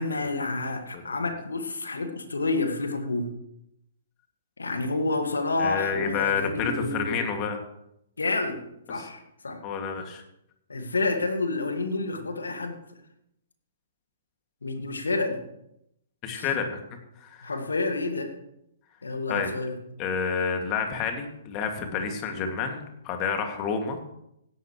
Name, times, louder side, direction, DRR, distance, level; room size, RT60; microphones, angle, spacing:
voice 1, 0.0-3.3 4.6-7.3 8.2-8.6 8.9-9.6 10.7-12.8 14.6-15.4 16.3-16.5 17.4-18.3 19.0-19.8, left 3 dB, 80° left, 6 dB, 2.0 m, -29 dB
voice 2, 5.6-7.6 9.0-9.1 9.6-10.2 16.2-16.8 17.2-17.5 19.3-19.5 20.0-24.0, left 6 dB, 30° left, 4 dB, 2.3 m, -29 dB
16.5 x 11.5 x 3.2 m, 0.80 s
figure-of-eight pair, 120°, 0 cm